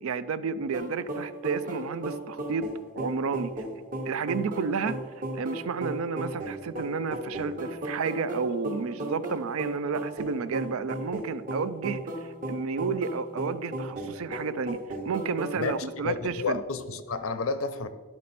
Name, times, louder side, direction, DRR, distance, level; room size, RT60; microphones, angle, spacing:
voice 1, 0.0-2.7 3.0-3.5 4.1-5.0 5.3-14.8 15.0-16.6, right 5 dB, 85° right, 0.4 m, -31 dB
sound 1, 0.7-15.8, right 1 dB, 40° right, 1.0 m, -35 dB
voice 2, 15.6-17.9, left 4 dB, 80° left, 0.6 m, -31 dB
12.0 x 4.2 x 4.2 m
head